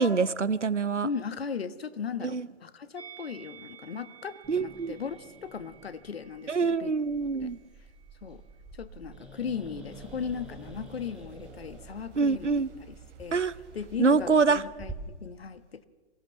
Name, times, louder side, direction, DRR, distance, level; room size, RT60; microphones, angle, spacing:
voice 1, 0.0-1.1 2.3-2.4 4.5-4.9 6.5-7.6 12.2-12.7 13.3-13.5 14.0-14.6, right 4 dB, 85° right, 19 dB, 0.8 m, -25 dB
voice 2, 1.0-6.9 7.4-7.5 8.2-8.4 8.7-13.4 13.7-15.8, left 6 dB, 60° left, 13 dB, 1.3 m, -37 dB
Musical instrument, 2.9-8.2 8.4-8.7, right 8 dB, 50° right, 5.6 m, -53 dB
Growling, 4.4-14.9, right 2 dB, 5° right, 2.8 m, -49 dB
sound 1, 9.9-14.3, right 8 dB, 25° right, 2.8 m, -53 dB
24.5 x 16.0 x 7.2 m, 1.3 s
figure-of-eight pair, 125°, 35 cm